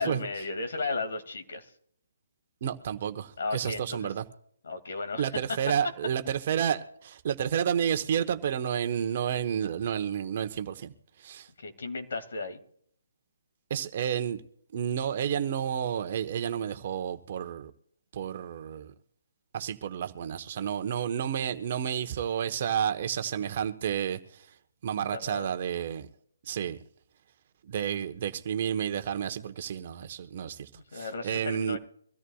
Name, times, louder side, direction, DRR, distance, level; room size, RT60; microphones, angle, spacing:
voice 1, 0.0-1.7 3.4-4.1 4.6-5.3 11.6-12.6 25.0-25.5 30.7-31.8, left 3 dB, 65° left, 2.3 m, -35 dB
voice 2, 2.6-4.2 5.2-10.9 11.2-11.5 13.7-14.4 14.7-17.7 18.1-18.9 19.5-24.5 24.8-26.1 26.4-26.8 27.6-31.8, right 8 dB, 45° right, 1.2 m, -31 dB
24.0 x 14.0 x 2.4 m
figure-of-eight pair, 145°, 0 cm